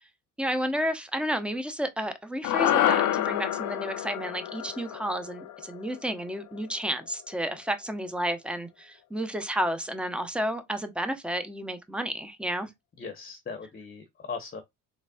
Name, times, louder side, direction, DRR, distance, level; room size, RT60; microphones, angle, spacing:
voice 1, 0.4-12.7, equal, 5° right, 0.7 m, -31 dB
sound 1, 2.4-6.9, left 12 dB, 80° left, 0.5 m, -28 dB
voice 2, 13.0-14.6, left 5 dB, 30° left, 0.8 m, -38 dB
4.0 x 3.2 x 2.3 m
cardioid pair, 90°, 30 cm